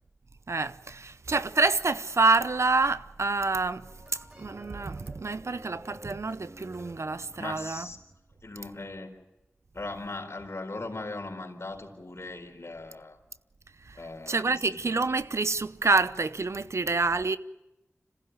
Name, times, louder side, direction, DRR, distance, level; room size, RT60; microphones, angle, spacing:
voice 1, 0.5-3.9 4.4-7.9 13.9-14.0 14.3-17.4, right 3 dB, 65° right, 0.8 m, -27 dB
sound 1, 3.8-8.2, right 1 dB, 25° right, 4.4 m, -51 dB
voice 2, 7.4-8.0 8.4-9.1 9.7-13.2 13.9-14.9, left 2 dB, 55° left, 4.3 m, -39 dB
26.5 x 15.5 x 9.4 m
cardioid pair, 40°, 5 cm